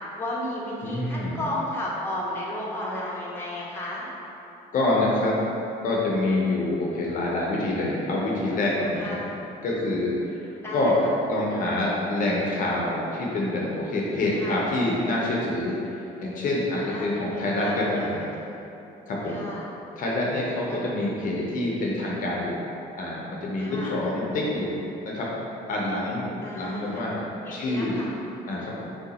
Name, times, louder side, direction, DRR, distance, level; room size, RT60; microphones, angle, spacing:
voice 1, 0.2-4.1 9.0-9.4 10.6-11.1 14.3-14.6 16.8-18.1 18.4-18.8 19.2-19.7 20.7-20.8 23.6-24.0 26.4-27.0 27.4-28.1, left 1 dB, 15° left, -6 dB, 0.8 m, -34 dB
voice 2, 0.8-1.4 4.7-5.4 5.8-9.2 9.6-11.0 11.2-18.2 19.1-19.5 20.0-22.7 23.0-25.3 25.7-28.0 28.5-28.8, left 1 dB, 50° left, -4 dB, 0.7 m, -26 dB
3.3 x 2.8 x 4.0 m, 2.9 s
cardioid pair, 110°, 17 cm